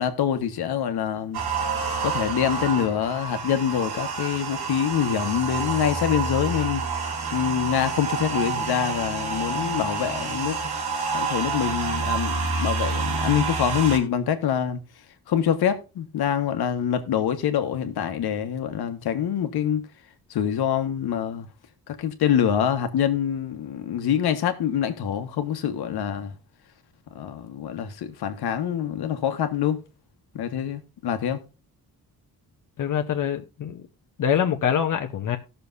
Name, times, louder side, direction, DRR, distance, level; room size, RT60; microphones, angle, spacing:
voice 1, 0.0-1.4 2.0-6.9 7.3-10.6 11.1-14.8 15.3-19.8 20.3-21.5 21.9-26.3 27.1-29.8 30.3-31.4, left 9 dB, 85° left, 1.4 m, -25 dB
sound 1, 1.3-14.0, right 4 dB, 90° right, 2.8 m, -28 dB
voice 2, 32.8-33.8 34.2-35.4, left 8 dB, 55° left, 0.9 m, -24 dB
17.5 x 6.8 x 2.6 m
wide cardioid pair, 165°, 37 cm